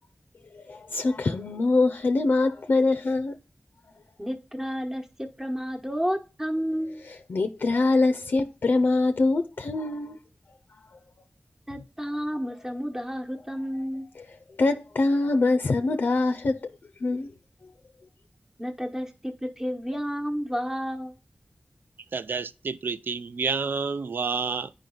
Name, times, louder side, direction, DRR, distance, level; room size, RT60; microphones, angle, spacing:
voice 1, 0.5-3.4 7.1-10.2 13.7-13.9 14.1-16.6 17.0-17.3 17.6-17.7, left 3 dB, 85° left, 0.5 m, -24 dB
voice 2, 4.2-7.0 11.7-14.1 18.6-21.2, equal, 15° right, 1.1 m, -31 dB
voice 3, 22.1-24.7, right 5 dB, 80° right, 0.3 m, -29 dB
9.2 x 5.0 x 3.8 m
cardioid pair, 45°, 3 cm